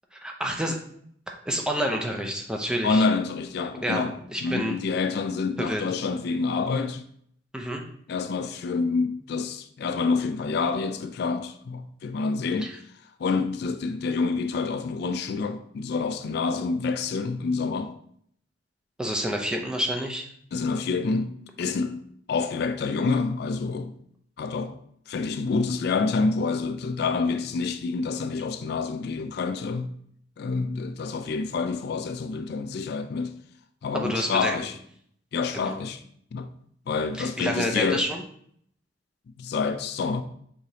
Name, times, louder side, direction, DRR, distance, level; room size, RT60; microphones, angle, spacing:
voice 1, 0.1-0.8 1.5-3.1 3.8-4.7 5.6-5.8 7.5-7.8 12.6-12.7 19.0-20.3 33.9-34.6 35.5-35.7 37.2-38.2, equal, 5° right, 0.5 m, -28 dB
voice 2, 2.8-4.2 4.4-7.0 8.1-12.8 13.2-17.9 20.5-22.0 22.3-24.0 24.4-24.8 25.1-29.9 30.4-33.3 33.8-34.8 35.3-36.0 36.3-36.5 36.9-38.1 39.4-40.2, left 4 dB, 60° left, 0.3 m, -27 dB
4.9 x 3.9 x 2.8 m
head